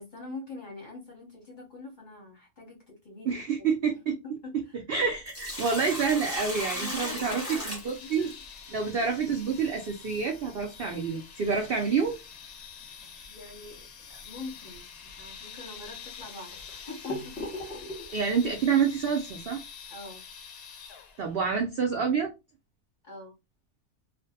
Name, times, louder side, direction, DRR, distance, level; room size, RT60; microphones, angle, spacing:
voice 1, 0.0-3.7 4.1-4.2 4.4-4.8 6.7-8.4 13.3-16.6 16.9-17.8 19.9-20.2 23.0-23.4, left 3 dB, 45° left, 0.7 m, -44 dB
voice 2, 3.3-4.1 4.9-8.3 8.7-12.2 18.1-19.6 21.2-22.3, right 5 dB, 80° right, 0.5 m, -28 dB
Sink (filling or washing), 5.0-8.6 11.0-11.1 13.0-13.2 13.7-13.8 14.6-14.8 15.4-15.5 16.2-18.1, left 1 dB, 10° left, 0.8 m, -36 dB
sound 1, 6.6-21.4, left 7 dB, 90° left, 1.1 m, -47 dB
2.5 x 2.1 x 2.7 m
omnidirectional pair, 1.6 m